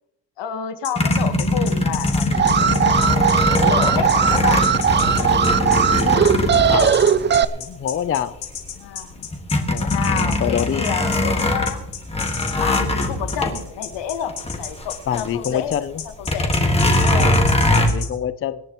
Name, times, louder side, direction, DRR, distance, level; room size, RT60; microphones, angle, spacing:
voice 1, 0.4-4.6 8.8-9.1 9.9-11.8 12.6-15.9 16.2-16.5 17.0-17.4, left 8 dB, 85° left, 8 dB, 1.5 m, -29 dB
sound 1, 0.8-18.1, left 8 dB, 65° left, 5.0 m, -32 dB
sound 2, 1.0-7.6 8.2-8.3 8.6-15.3 15.6-15.7 16.2-17.9, left 1 dB, 15° left, 1.6 m, -21 dB
Alarm, 2.3-7.4, right 7 dB, 25° right, 0.4 m, -18 dB
voice 2, 6.0-7.1 7.5-8.4 9.2-9.3 9.7-10.9 15.1-16.0 17.2-18.6, left 9 dB, 35° left, 13 dB, 0.4 m, -27 dB
25.0 x 11.0 x 3.0 m, 0.84 s
cardioid pair, 150°, 42 cm